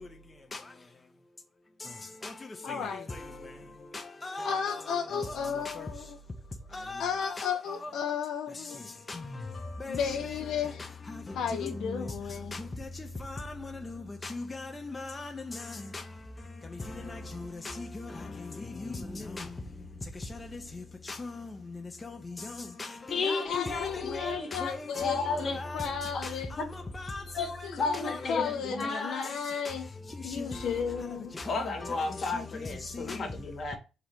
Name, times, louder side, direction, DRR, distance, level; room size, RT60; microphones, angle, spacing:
voice 1, 2.6-3.1 4.4-6.2 7.0-8.8 9.9-10.8 11.3-12.5 23.1-26.5 27.6-29.9 30.2-31.4, left 7 dB, 75° left, 0.4 m, -34 dB
voice 2, 4.2-5.2 6.7-7.4 7.7-7.9 9.1-9.2 9.8-10.0 11.6-11.7 13.3-13.4 14.3-15.3 19.1-19.4 22.8-23.9 24.1-24.3 24.6-25.1 25.4-25.8 26.9-27.2 28.0-28.2 29.0-29.1 30.4-30.5, left 3 dB, 25° left, 0.5 m, -38 dB
voice 3, 23.1-24.7 25.0-25.6 26.1-26.2 26.6-26.7 27.3-29.3 31.4-33.8, left 4 dB, 50° left, 1.1 m, -33 dB
3.8 x 2.0 x 4.4 m
cardioid pair, 90°, 0 cm